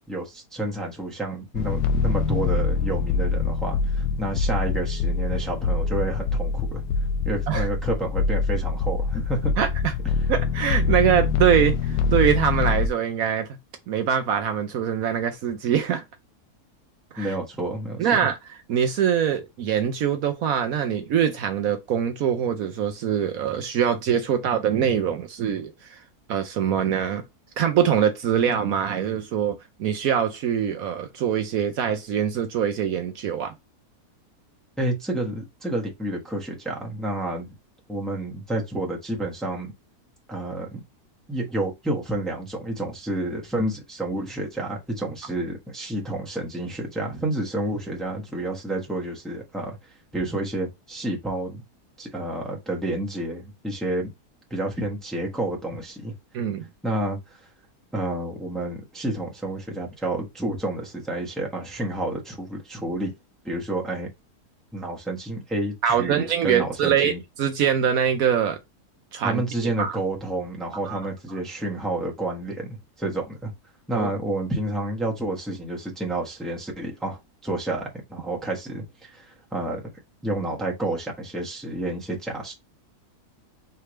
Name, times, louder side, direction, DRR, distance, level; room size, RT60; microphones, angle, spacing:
voice 1, 0.1-6.8 7.2-9.5 17.2-18.1 34.8-37.5 37.9-39.7 40.3-40.8 41.3-49.8 50.1-51.6 52.0-54.1 54.5-56.1 56.8-57.5 57.9-63.1 63.4-64.1 64.7-67.2 69.2-73.5 73.9-79.9 80.2-82.5, right 1 dB, ahead, 1.1 m, -30 dB
sound 1, 1.5-12.9, left 4 dB, 80° left, 1.2 m, -24 dB
voice 2, 9.6-9.9 10.3-13.5 13.9-16.0 17.1-17.3 18.0-18.3 18.7-26.0 26.3-27.2 27.6-33.5 56.3-56.7 65.8-68.6 69.1-69.4 69.8-70.0 70.9-71.0 73.9-74.1, right 8 dB, 70° right, 1.0 m, -23 dB
4.9 x 3.3 x 3.1 m
omnidirectional pair, 1.7 m